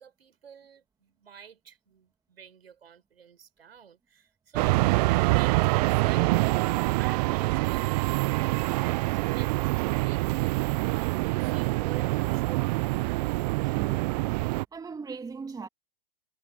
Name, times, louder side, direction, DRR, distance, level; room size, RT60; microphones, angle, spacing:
voice 1, 0.0-6.4 7.0-12.8, right 7 dB, 80° right, 6.6 m, -48 dB
sound 1, 4.6-14.7, right 23 dB, 40° right, 0.6 m, -25 dB
voice 2, 13.6-14.4 14.7-15.7, right 5 dB, 10° right, 2.8 m, -39 dB
hypercardioid pair, 115°, 30 cm